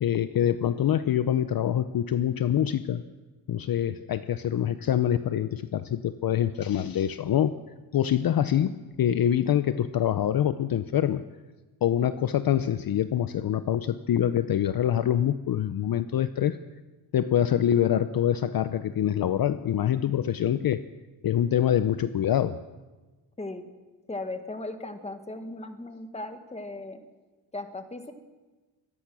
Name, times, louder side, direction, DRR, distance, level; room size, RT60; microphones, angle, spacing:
voice 1, 0.0-3.0 3.5-7.6 7.9-11.2 11.8-16.6 17.1-20.8 21.2-22.6, left 10 dB, 50° left, 12 dB, 0.7 m, -25 dB
voice 2, 24.1-27.0 27.5-28.1, left 2 dB, 15° left, 7 dB, 1.6 m, -37 dB
24.5 x 18.5 x 6.2 m, 1.2 s
wide cardioid pair, 155°, 46 cm